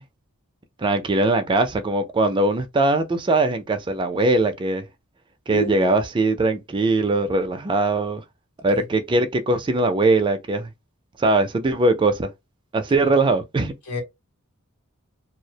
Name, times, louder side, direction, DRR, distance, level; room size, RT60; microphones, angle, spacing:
voice 1, 0.8-4.9 5.5-8.2 8.6-10.7 11.2-12.3 12.7-13.7, right 2 dB, 20° right, 0.3 m, -21 dB
voice 2, 5.5-6.0 8.7-8.9 13.0-13.1 13.9-14.0, equal, 75° left, 0.9 m, -29 dB
2.3 x 2.0 x 2.7 m
head